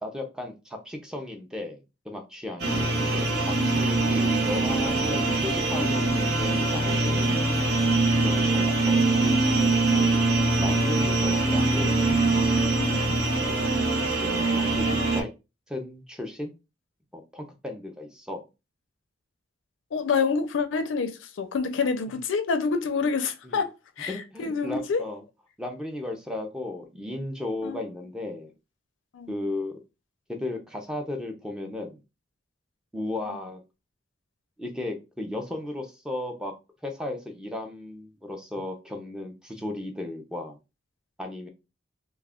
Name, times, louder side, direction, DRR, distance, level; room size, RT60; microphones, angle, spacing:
voice 1, 0.0-1.8 2.0-7.5 8.2-10.2 10.5-12.1 14.2-14.9 15.1-15.3 15.7-16.5 17.1-18.4 23.4-23.6 24.1-25.2 25.6-28.5 29.3-29.8 30.3-32.0 32.9-33.6 34.6-36.5 36.8-40.6 41.2-41.5, left 1 dB, 5° right, 0.4 m, -35 dB
sound 1, 2.6-15.2, right 2 dB, 60° right, 0.8 m, -23 dB
voice 2, 12.8-13.2 19.9-25.0 27.6-27.8 29.1-29.3 33.3-33.4, left 5 dB, 85° left, 0.4 m, -28 dB
2.3 x 2.1 x 3.4 m
head